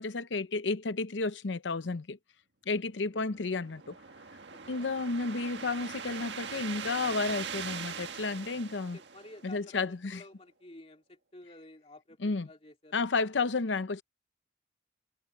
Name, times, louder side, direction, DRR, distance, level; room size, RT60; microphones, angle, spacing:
voice 1, 0.0-2.2 2.7-4.0 4.7-9.0 9.4-10.2 12.2-12.5 12.9-14.0, left 3 dB, 90° left, 0.7 m, -32 dB
sound 1, 3.2-9.7, right 6 dB, 75° right, 1.7 m, -41 dB
voice 2, 4.5-4.9 8.9-13.0, left 1 dB, 35° left, 2.8 m, -52 dB
head